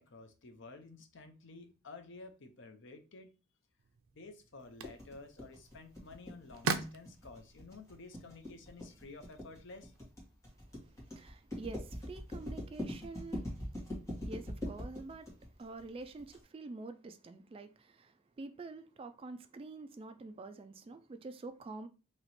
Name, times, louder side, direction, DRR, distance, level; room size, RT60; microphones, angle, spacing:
voice 1, 0.0-3.3 4.1-9.9, left 3 dB, 60° left, 0.7 m, -52 dB
sound 1, 3.8-10.0, right 5 dB, 85° right, 0.5 m, -43 dB
sound 2, 4.8-16.4, left 1 dB, 15° left, 1.5 m, -42 dB
voice 2, 11.2-13.4 14.3-15.3 15.6-21.9, right 3 dB, 25° right, 0.3 m, -47 dB
3.0 x 2.9 x 4.1 m
head